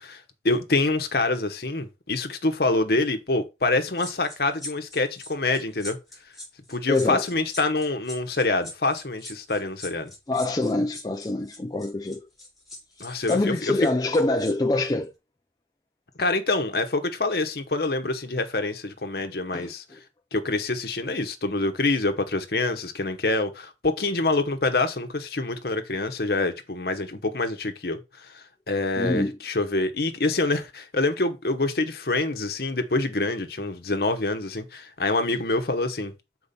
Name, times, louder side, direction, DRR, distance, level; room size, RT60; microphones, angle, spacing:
voice 1, 0.0-6.0 6.7-10.1 13.0-13.7 16.2-19.8 20.3-36.1, left 2 dB, 55° left, 1.0 m, -26 dB
sound 1, 4.0-14.5 14.8-15.0, left 1 dB, ahead, 3.0 m, -42 dB
voice 2, 6.9-7.3 10.3-12.2 13.1-15.1 19.5-19.7 29.0-29.4, left 2 dB, 20° left, 0.4 m, -25 dB
6.8 x 4.6 x 4.2 m
head